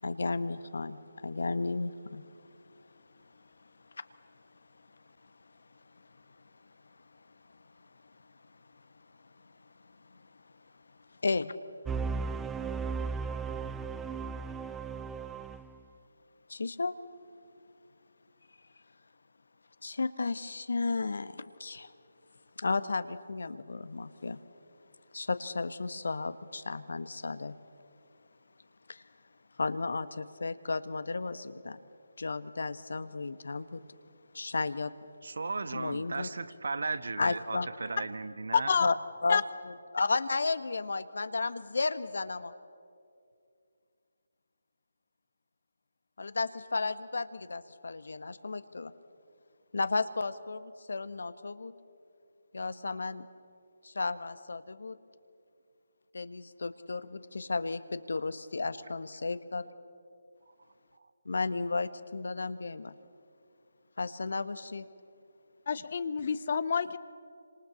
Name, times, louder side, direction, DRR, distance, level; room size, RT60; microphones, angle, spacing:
voice 1, 0.0-2.3 3.3-3.4 3.9-4.0 5.2-5.3 5.7-6.1 7.1-7.9 8.2-8.8 9.4-10.4 10.9-11.5 16.5-17.0 19.8-21.9 22.6-24.4 25.1-27.6 28.9-29.0 29.6-31.8 32.2-33.8 34.3-34.9 35.7-36.3 37.2-37.7 38.8-38.9 39.2-39.4 39.9-42.5 46.2-48.9 49.7-51.7 52.5-53.3 53.8-55.0 56.1-59.7 61.2-62.9 64.0-64.9, left 3 dB, 65° left, 1.4 m, -34 dB
sound 1, 11.9-15.8, right 5 dB, 10° right, 0.5 m, -35 dB
voice 2, 35.2-38.7, right 3 dB, 65° right, 1.3 m, -36 dB
voice 3, 38.5-38.9 39.3-39.4 65.7-67.0, left 6 dB, 45° left, 1.0 m, -28 dB
28.0 x 26.5 x 7.1 m
figure-of-eight pair, 155°, 0 cm